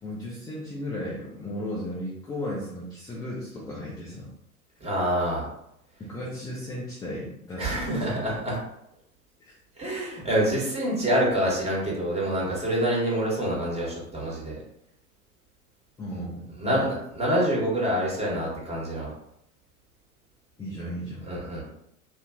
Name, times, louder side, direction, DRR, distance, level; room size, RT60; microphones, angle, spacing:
voice 1, 0.0-4.3 6.0-8.2 9.4-9.5 16.0-16.9 20.6-21.2, left 1 dB, 10° left, -6 dB, 0.5 m, -35 dB
voice 2, 4.8-5.4 7.6-8.6 9.8-14.5 16.6-19.1 21.3-21.6, right 1 dB, 15° right, -6 dB, 1.3 m, -26 dB
2.8 x 2.2 x 3.5 m, 0.77 s
figure-of-eight pair, 90°, 44 cm